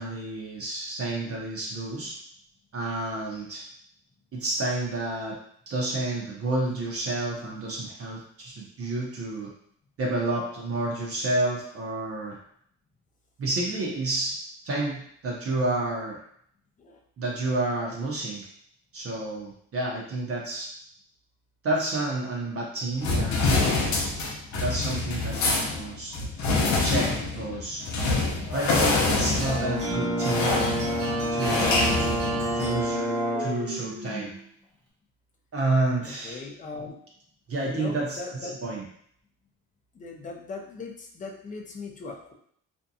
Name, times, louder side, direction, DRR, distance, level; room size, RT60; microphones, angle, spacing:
voice 1, 0.0-2.1 2.7-3.6 4.3-5.4 5.7-9.5 10.0-12.4 13.4-14.3 14.6-16.2 17.2-18.5 18.9-20.7 21.6-23.8 24.5-26.1 26.8-27.8 28.5-30.6 31.3-33.1 33.4-34.3 35.5-36.4 37.5-38.8, right 2 dB, 50° right, -3 dB, 0.7 m, -30 dB
sound 1, 23.0-32.8, left 3 dB, 70° left, 0.7 m, -26 dB
voice 2, 27.2-27.6 36.0-37.0 37.6-38.6 39.9-42.3, left 3 dB, 25° left, 1 dB, 0.5 m, -39 dB
Brass instrument, 29.4-33.6, equal, 10° right, 1.0 m, -28 dB
sound 2, 29.4-34.5, right 2 dB, 90° right, 1.1 m, -35 dB
2.6 x 2.2 x 2.6 m, 0.66 s
cardioid pair, 90°, 30 cm